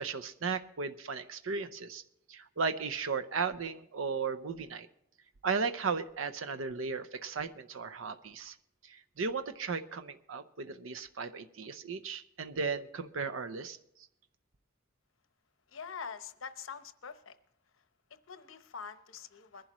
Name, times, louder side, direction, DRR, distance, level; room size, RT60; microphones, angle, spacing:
voice 1, 0.0-2.0 2.3-4.9 5.4-8.6 8.8-13.8, right 5 dB, 85° right, 9 dB, 0.6 m, -35 dB
voice 2, 15.7-17.4 17.8-17.9 18.1-19.7, left 6 dB, 85° left, 11 dB, 0.9 m, -45 dB
21.5 x 11.5 x 3.0 m, 0.77 s
head